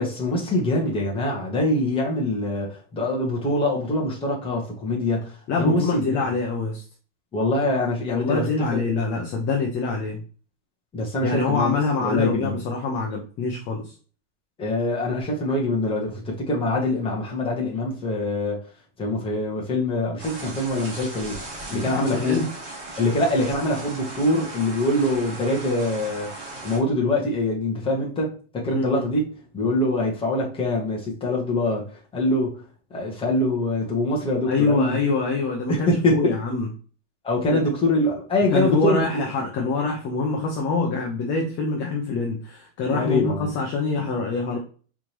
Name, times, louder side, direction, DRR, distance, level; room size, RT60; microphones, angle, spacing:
voice 1, 0.0-5.3 5.6-6.2 7.3-8.8 10.9-11.7 12.0-12.6 14.6-18.6 19.0-21.4 21.7-22.4 23.0-26.3 26.6-29.2 29.5-32.6 32.9-35.0 35.7-36.3 37.2-39.0 42.9-43.5, left 1 dB, 15° left, 1.4 m, -24 dB
voice 2, 5.5-6.8 8.1-10.2 11.2-13.9 21.7-22.5 28.7-29.0 34.5-36.7 37.5-37.6 38.5-44.6, left 3 dB, 30° left, 0.8 m, -25 dB
sound 1, 20.2-26.8, right 2 dB, 30° right, 2.4 m, -37 dB
4.9 x 3.6 x 3.0 m
supercardioid pair, 155°, 38 cm